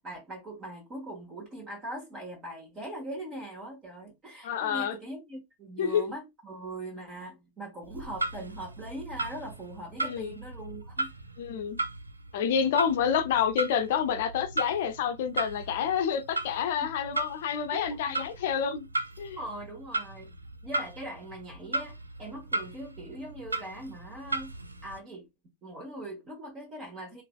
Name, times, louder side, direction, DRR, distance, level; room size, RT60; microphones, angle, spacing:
voice 1, 0.0-11.1 16.8-16.9 17.7-18.1 19.4-20.3 20.6-24.5 24.8-25.3 25.6-27.2, right 1 dB, 30° right, 1.2 m, -41 dB
voice 2, 4.4-5.0 5.8-6.0 10.0-10.4 11.4-11.8 12.3-18.9 19.2-19.4, left 8 dB, 55° left, 0.5 m, -28 dB
Clock, 7.8-25.0, right 2 dB, 80° right, 0.4 m, -37 dB
3.9 x 2.5 x 2.3 m
figure-of-eight pair, 90°, 0 cm